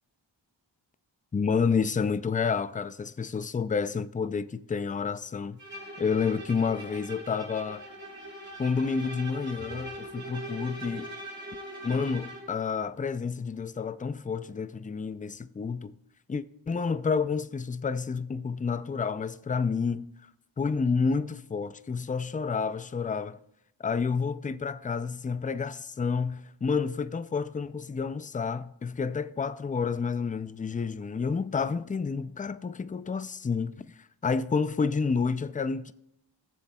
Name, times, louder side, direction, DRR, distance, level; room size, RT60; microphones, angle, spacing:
voice 1, 1.3-5.6 6.0-7.8 8.6-11.1 11.8-15.9 16.3-20.1 20.6-23.4 23.8-33.9 34.2-35.9, left 5 dB, 20° left, 0.3 m, -29 dB
Bowed string instrument, 5.6-12.5, right 1 dB, 25° right, 3.1 m, -41 dB
18.5 x 7.3 x 2.3 m
cardioid pair, 40°, 46 cm